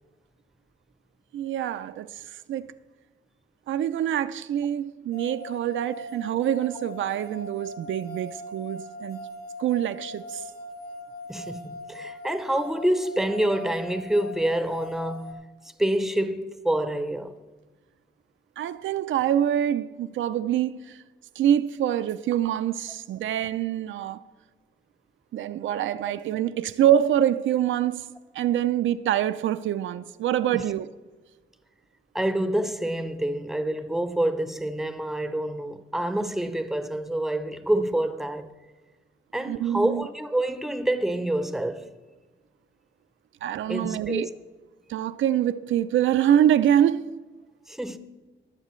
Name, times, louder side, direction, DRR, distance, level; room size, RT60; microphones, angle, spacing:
voice 1, 1.3-2.7 3.7-9.3 9.6-10.4 18.6-21.0 21.4-24.2 25.3-30.9 39.4-40.0 43.4-44.3 44.9-47.1, right 10 dB, 85° right, 0.4 m, -25 dB
sound 1, 5.1-15.3, left 1 dB, 50° left, 1.2 m, -40 dB
voice 2, 11.3-15.5 15.8-17.4 30.5-30.6 32.1-38.5 39.3-41.9 43.7-44.3 47.7-48.0, right 1 dB, ahead, 0.6 m, -27 dB
21.5 x 7.4 x 3.1 m
wide cardioid pair, 150°, 19 cm